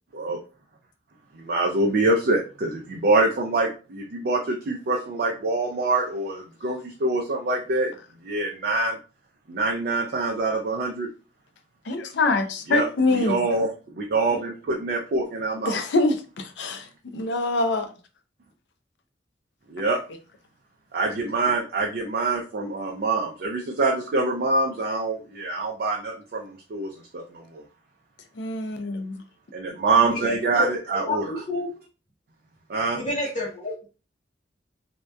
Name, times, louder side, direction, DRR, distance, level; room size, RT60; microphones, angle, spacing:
voice 1, 1.4-7.9 8.2-9.0 9.5-11.1 12.7-12.8 13.1-13.7 14.0-15.8 19.7-20.0 20.9-27.2 27.5-27.6 29.5-31.2 32.7-33.0, right 3 dB, 55° right, 0.4 m, -25 dB
voice 2, 11.9-13.4 15.7-17.9 28.4-29.2, left 2 dB, 75° left, 0.4 m, -25 dB
voice 3, 30.1-30.7 30.9-31.7 33.0-33.8, left 2 dB, 35° left, 0.6 m, -30 dB
2.7 x 2.2 x 2.2 m
head